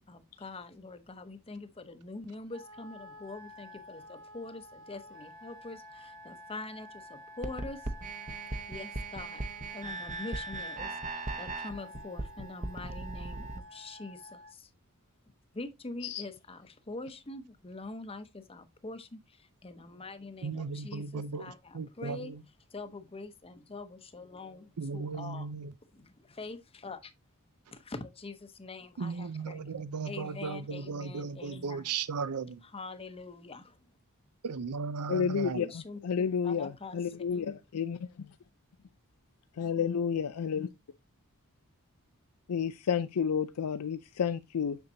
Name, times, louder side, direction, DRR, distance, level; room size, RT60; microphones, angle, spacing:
voice 1, 0.0-7.9 8.7-14.7 15.5-22.3 22.7-25.5 25.9-27.1 27.7-29.6 30.0-31.8 32.7-33.8 35.6-37.4, left 3 dB, 25° left, 0.8 m, -44 dB
Wind instrument woodwind instrument, 2.5-14.5, left 1 dB, 60° right, 1.4 m, -50 dB
sound 1, 7.4-13.6, right 2 dB, 35° right, 0.8 m, -38 dB
voice 2, 20.4-22.4 24.8-25.7 29.0-32.6 34.4-35.6, right 5 dB, 85° right, 0.6 m, -36 dB
voice 3, 35.1-35.7 36.0-38.3 39.6-40.7 42.5-44.8, left 7 dB, 85° left, 0.4 m, -31 dB
7.0 x 6.6 x 2.7 m
head